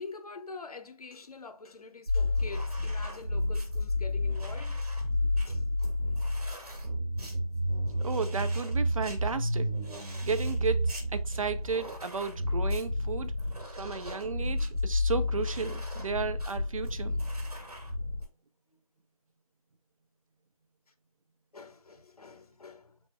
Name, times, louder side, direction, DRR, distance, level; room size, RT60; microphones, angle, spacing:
voice 1, 0.0-4.9 5.5-5.7 21.5-23.0, left 3 dB, 75° left, 0.8 m, -45 dB
sound 1, 2.1-18.3, left 1 dB, 80° right, 1.9 m, -31 dB
voice 2, 8.0-9.7 10.2-13.3 13.7-17.2, right 5 dB, 60° right, 0.6 m, -34 dB
4.2 x 4.1 x 2.2 m
figure-of-eight pair, 160°, 19 cm